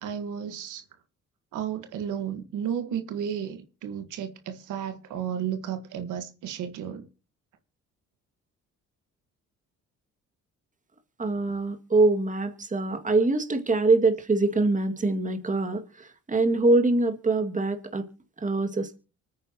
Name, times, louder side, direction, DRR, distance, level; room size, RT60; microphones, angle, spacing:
voice 1, 0.0-0.8 1.5-7.1, right 9 dB, 80° right, 1.5 m, -33 dB
voice 2, 11.2-18.0 18.4-19.0, right 3 dB, 25° right, 2.2 m, -24 dB
25.0 x 9.4 x 2.9 m
cardioid pair, 90°, 30 cm